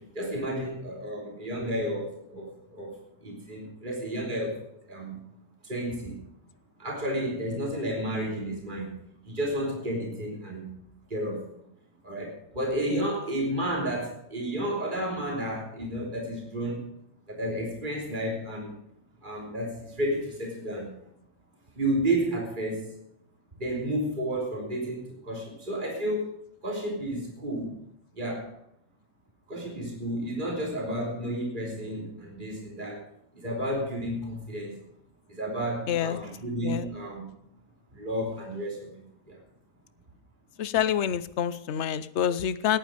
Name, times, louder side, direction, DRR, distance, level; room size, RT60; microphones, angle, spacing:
voice 1, 0.0-4.6 4.9-5.2 5.6-6.2 6.8-8.9 9.2-10.7 11.1-11.5 12.0-16.9 17.3-18.7 19.2-20.9 21.7-22.9 23.6-27.7 28.1-28.5 29.5-33.1 33.3-34.8 35.3-37.3 37.9-39.4, right 1 dB, 35° right, -1 dB, 3.5 m, -32 dB
voice 2, 35.9-36.2 36.6-36.9 40.6-42.8, left 9 dB, 60° left, 15 dB, 1.0 m, -27 dB
19.5 x 9.0 x 5.1 m, 0.73 s
omnidirectional pair, 1.4 m